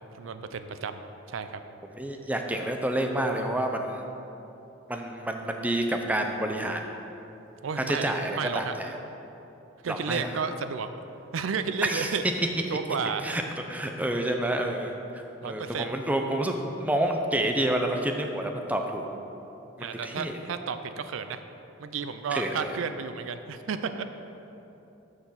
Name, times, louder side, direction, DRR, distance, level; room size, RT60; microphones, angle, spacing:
voice 1, 0.1-1.6 7.6-8.7 9.8-10.9 11.3-12.2 12.7-13.3 15.4-16.0 19.8-21.4 21.8-24.0, right 5 dB, 80° right, 10 dB, 0.4 m, -32 dB
voice 2, 1.9-4.0 4.9-6.8 7.9-8.9 9.9-10.3 11.8-12.2 13.2-13.4 13.7-16.5 16.8-19.0 19.8-20.4 22.3-22.8, right 1 dB, 10° right, 3 dB, 0.5 m, -29 dB
6.4 x 6.0 x 7.1 m, 3.0 s
head